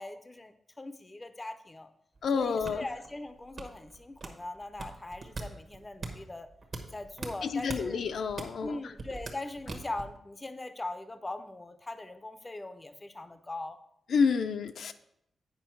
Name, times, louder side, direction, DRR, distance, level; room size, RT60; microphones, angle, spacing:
voice 1, 0.0-1.9 2.3-6.5 6.9-8.0 8.6-13.8, left 2 dB, 15° left, 9 dB, 0.5 m, -41 dB
sound 1, 2.1-10.2, right 3 dB, 40° right, 1.1 m, -42 dB
voice 2, 2.2-2.8 7.4-8.9 14.1-14.9, left 5 dB, 75° left, 8 dB, 0.5 m, -29 dB
9.0 x 5.4 x 4.5 m, 0.76 s
wide cardioid pair, 175°, 0 cm